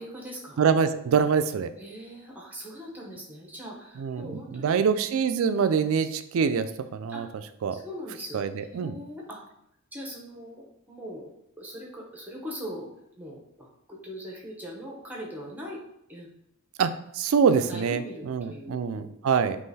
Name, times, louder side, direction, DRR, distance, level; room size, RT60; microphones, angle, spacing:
voice 1, 0.0-0.7 1.8-4.8 7.1-7.2 7.7-8.4 8.7-9.4 9.9-11.3 11.6-12.9 13.2-15.8 16.1-16.3 17.7-19.1, equal, 10° right, -3 dB, 0.8 m, -40 dB
voice 2, 0.6-1.7 4.0-7.3 7.6-7.8 8.3-9.0 16.8-19.6, right 6 dB, 65° right, 10 dB, 0.3 m, -25 dB
3.7 x 3.0 x 4.1 m, 0.76 s
head